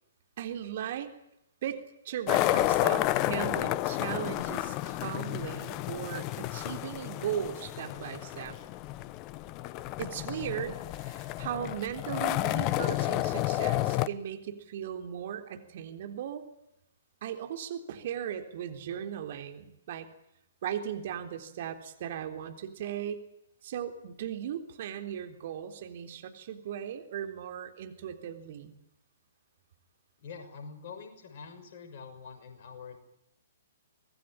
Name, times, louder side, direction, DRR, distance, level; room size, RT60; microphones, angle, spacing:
voice 1, 0.4-1.1 1.6-8.6 10.0-16.5 17.2-20.1 20.6-23.3 23.6-28.7, right 9 dB, 50° right, 6 dB, 3.7 m, -37 dB
sound 1, 2.3-14.1, left 16 dB, 30° left, 1.0 m, -31 dB
voice 2, 30.2-33.0, left 5 dB, 50° left, 6 dB, 6.1 m, -45 dB
25.5 x 20.0 x 9.1 m, 0.83 s
figure-of-eight pair, 120°, 0 cm